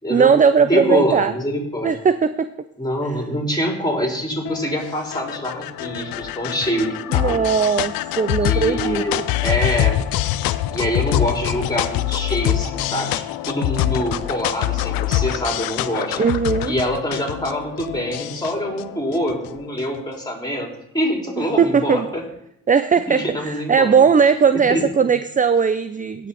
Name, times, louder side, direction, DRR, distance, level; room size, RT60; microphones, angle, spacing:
voice 1, 0.1-1.3 1.8-2.7 3.0-3.2 7.1-9.2 16.2-16.7 21.4-22.1 22.7-26.3, right 6 dB, 20° right, 13 dB, 0.5 m, -18 dB
voice 2, 0.7-1.9 2.8-7.4 8.4-10.0 10.7-16.2 16.6-20.7 20.9-22.2 23.1-24.0 24.7-24.9, equal, 10° left, 0 dB, 4.3 m, -25 dB
sound 1, 4.4-20.0, left 14 dB, 70° left, 0.6 m, -25 dB
17.0 x 6.6 x 4.0 m, 0.78 s
hypercardioid pair, 45°, 37 cm